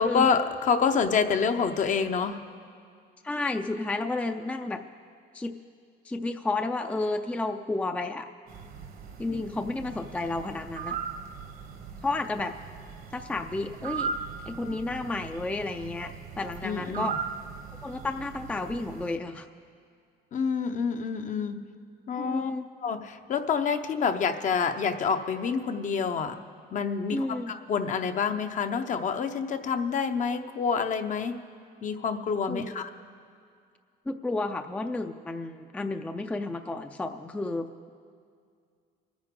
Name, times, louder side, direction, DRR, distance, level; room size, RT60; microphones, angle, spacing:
voice 1, 0.0-2.5 16.6-17.2 20.3-21.7 22.1-22.5 22.8-26.4 26.7-31.4 31.8-32.9, left 6 dB, 50° left, 7 dB, 0.8 m, -27 dB
voice 2, 3.2-4.8 5.3-5.5 6.0-8.3 9.2-11.0 12.0-12.5 13.1-14.1 14.5-17.2 17.8-19.5 22.1-22.7 27.1-27.5 32.5-32.8 34.1-37.9, left 2 dB, 10° left, 7 dB, 0.4 m, -31 dB
sound 1, 8.5-19.2, right 6 dB, 65° right, 1.2 m, -39 dB
25.0 x 9.7 x 3.7 m, 2.3 s
cardioid pair, 110°, 17 cm